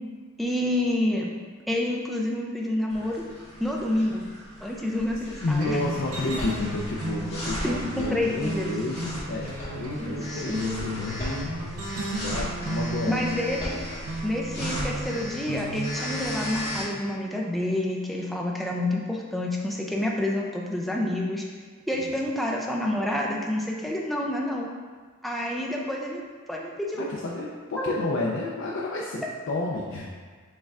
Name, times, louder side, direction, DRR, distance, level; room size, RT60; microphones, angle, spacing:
voice 1, 0.4-1.3 1.7-3.2 3.6-4.2 4.6-5.8 7.6-8.7 10.0-10.6 13.1-13.8 14.2-21.4 21.9-24.7 25.2-26.2 26.5-27.0 27.8-27.9, left 1 dB, ahead, -2 dB, 0.4 m, -28 dB
sound 1, 2.9-16.8, left 1 dB, 30° left, 1.4 m, -37 dB
voice 2, 5.4-13.2 21.9-22.1 26.9-30.1, left 2 dB, 55° left, -4 dB, 0.4 m, -31 dB
sound 2, 5.6-16.9, right 2 dB, 90° right, 0.6 m, -34 dB
6.4 x 3.4 x 2.4 m, 1.5 s
head